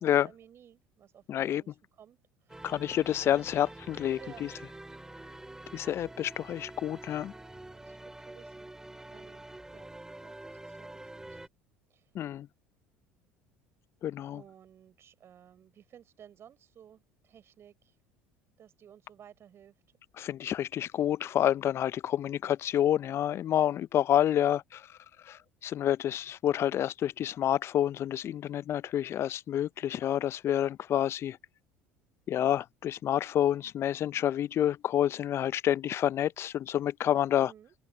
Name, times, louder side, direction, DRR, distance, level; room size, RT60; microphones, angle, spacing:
voice 1, 0.0-3.0 3.3-3.8 4.2-4.4 7.6-8.7 9.1-10.0 10.2-11.4 11.9-12.1 14.3-18.0 18.6-19.8 37.3-37.7, right 9 dB, 45° right, 6.2 m, -56 dB
voice 2, 1.3-1.6 2.6-4.5 5.7-7.3 12.1-12.5 14.0-14.4 20.2-24.8 25.3-31.4 32.3-37.5, left 11 dB, 45° left, 0.5 m, -28 dB
sound 1, 2.5-11.5, right 2 dB, 10° right, 2.0 m, -47 dB
hypercardioid pair, 70°, 6 cm